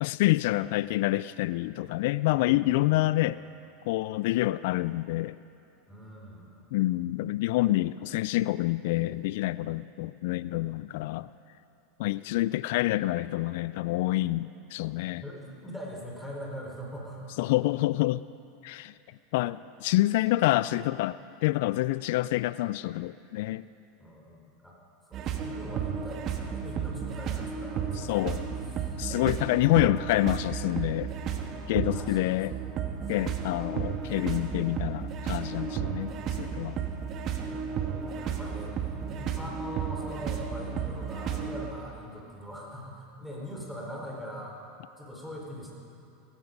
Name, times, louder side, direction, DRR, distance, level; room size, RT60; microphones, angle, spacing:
voice 1, 0.0-3.4 3.9-5.4 6.7-11.3 12.0-15.2 17.4-18.2 18.6-18.9 19.3-23.7 28.1-28.4 29.0-31.1 31.7-32.5 33.1-36.1 36.4-36.8, left 17 dB, 65° left, 17 dB, 0.3 m, -27 dB
voice 2, 2.3-3.0 5.9-6.6 15.2-17.3 24.0-24.8 25.1-28.5 28.8-29.0 31.8-32.4 33.1-33.2 35.5-36.0 38.0-44.6 44.9-45.7, equal, ahead, -3 dB, 4.2 m, -42 dB
sound 1, 25.1-41.7, right 7 dB, 45° right, 1.5 m, -33 dB
17.0 x 15.0 x 5.3 m, 2.6 s
hypercardioid pair, 100°, 0 cm